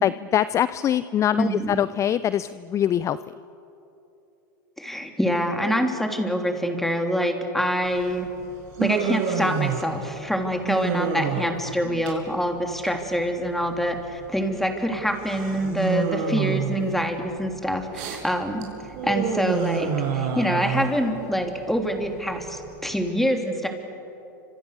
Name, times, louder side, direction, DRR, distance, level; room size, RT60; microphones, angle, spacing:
voice 1, 0.0-3.2, left 10 dB, 30° left, 16 dB, 0.5 m, -23 dB
voice 2, 1.3-1.8 4.8-8.3 8.8-23.7, equal, 5° left, 4 dB, 3.2 m, -25 dB
Human voice, 7.8-23.1, right 7 dB, 55° right, 5.6 m, -30 dB
29.5 x 26.5 x 6.7 m, 2.9 s
hypercardioid pair, 110°, 11 cm